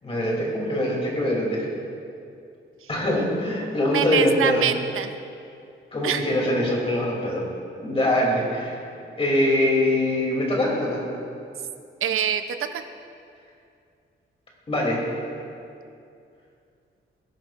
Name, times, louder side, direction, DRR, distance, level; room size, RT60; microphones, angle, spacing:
voice 1, 0.0-1.7 2.9-4.6 5.9-7.4 7.8-8.8 9.2-11.0 14.7-15.1, left 1 dB, 30° left, -3 dB, 2.8 m, -23 dB
voice 2, 3.9-5.1 6.0-6.2 12.0-12.8, right 8 dB, 90° right, 8 dB, 0.6 m, -25 dB
20.0 x 11.0 x 2.5 m, 2.5 s
wide cardioid pair, 175°, 21 cm